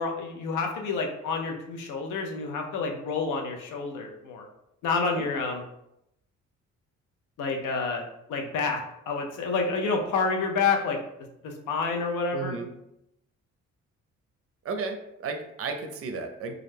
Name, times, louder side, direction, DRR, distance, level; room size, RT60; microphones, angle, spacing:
voice 1, 0.0-4.5 4.8-5.6 7.4-8.0 8.3-11.0 11.4-12.6, left 4 dB, 85° left, 3 dB, 0.6 m, -28 dB
voice 2, 12.3-12.7 14.6-16.5, right 4 dB, 50° right, 5 dB, 0.5 m, -34 dB
2.4 x 2.1 x 3.2 m, 0.81 s
cardioid pair, 90°, 30 cm